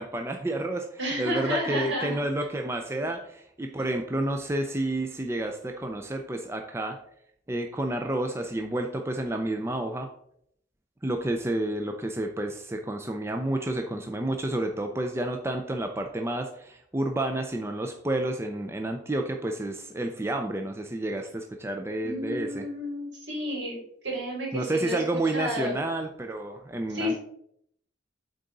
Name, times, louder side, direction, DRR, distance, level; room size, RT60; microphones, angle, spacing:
voice 1, 0.0-7.0 7.5-10.1 11.0-22.6 24.5-27.1, right 1 dB, 15° right, 4 dB, 0.4 m, -30 dB
voice 2, 1.0-2.2 22.0-25.8 26.9-27.2, equal, 70° right, -2 dB, 2.9 m, -31 dB
8.3 x 3.9 x 3.8 m, 0.69 s
head